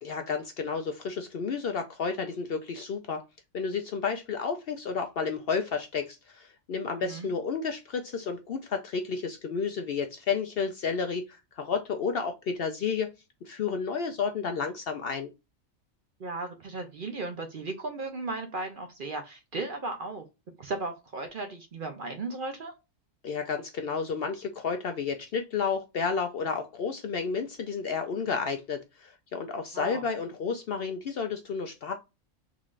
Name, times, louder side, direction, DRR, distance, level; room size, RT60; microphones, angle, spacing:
voice 1, 0.0-3.2 3.5-13.1 13.4-15.3 23.2-31.9, left 5 dB, 60° left, 6 dB, 0.6 m, -31 dB
voice 2, 16.2-20.2 20.6-22.7 29.7-30.0, right 3 dB, 50° right, 5 dB, 0.7 m, -36 dB
3.8 x 3.2 x 2.3 m, 0.25 s
omnidirectional pair, 1.4 m